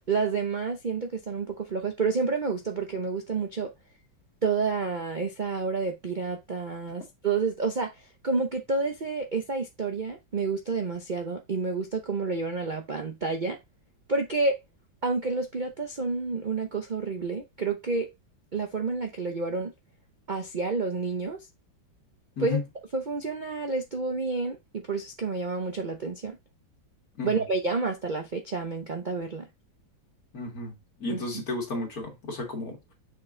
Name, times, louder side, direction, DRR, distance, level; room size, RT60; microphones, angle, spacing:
voice 1, 0.1-3.7 4.4-7.9 8.2-13.6 14.1-14.6 15.0-18.1 18.5-19.7 20.3-21.4 22.4-22.6 22.9-26.4 27.2-29.5 31.1-31.2, right 4 dB, 70° right, 0.4 m, -29 dB
voice 2, 30.3-30.7 31.0-32.9, left 3 dB, 50° left, 2.3 m, -32 dB
6.6 x 4.5 x 3.7 m
omnidirectional pair, 2.1 m